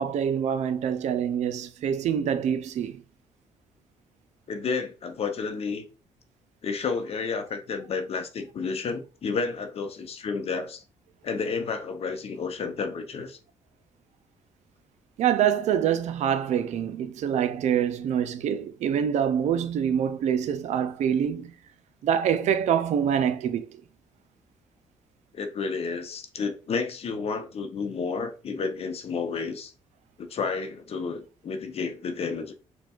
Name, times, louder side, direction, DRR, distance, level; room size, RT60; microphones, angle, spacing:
voice 1, 0.0-3.0 15.2-21.5 22.0-23.6, right 8 dB, 70° right, 0.4 m, -25 dB
voice 2, 4.5-5.9 6.6-10.8 11.2-13.4 25.3-29.7 30.2-32.5, left 5 dB, 55° left, 0.7 m, -31 dB
4.2 x 2.2 x 2.4 m
supercardioid pair, 60°, 12 cm